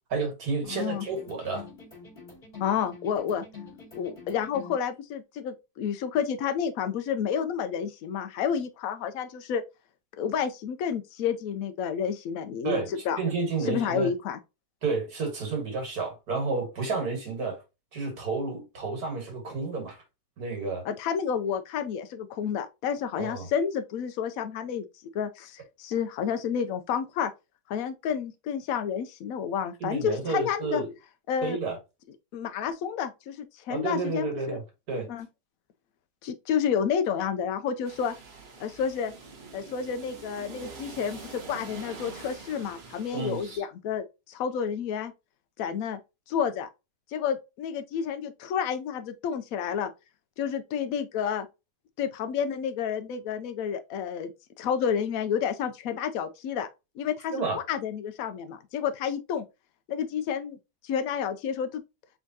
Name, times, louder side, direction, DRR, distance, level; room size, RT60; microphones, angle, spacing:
voice 1, 0.1-1.6 12.6-14.1 14.8-17.6 17.9-20.0 20.4-20.8 23.2-23.5 29.8-30.9 31.4-31.8 33.7-34.6 34.9-35.1 43.1-43.6 57.3-57.6, right 4 dB, 65° right, 2.1 m, -31 dB
sound 1, 0.6-4.8, left 4 dB, 30° left, 2.7 m, -46 dB
voice 2, 0.7-1.0 2.6-3.4 3.9-9.6 10.2-12.8 13.0-13.2 13.7-14.4 20.8-24.9 25.1-27.3 27.7-30.8 31.3-31.6 32.3-34.6 35.1-35.3 36.2-38.1 38.6-39.1 39.5-45.1 45.6-46.0 46.3-46.7 47.1-49.9 50.4-51.5 52.0-54.3 54.6-56.7 57.0-59.4 59.9-60.6 60.8-61.8, left 7 dB, 70° left, 0.9 m, -30 dB
sound 2, 37.8-43.6, right 4 dB, 40° right, 1.2 m, -45 dB
4.5 x 3.5 x 2.7 m
omnidirectional pair, 1.8 m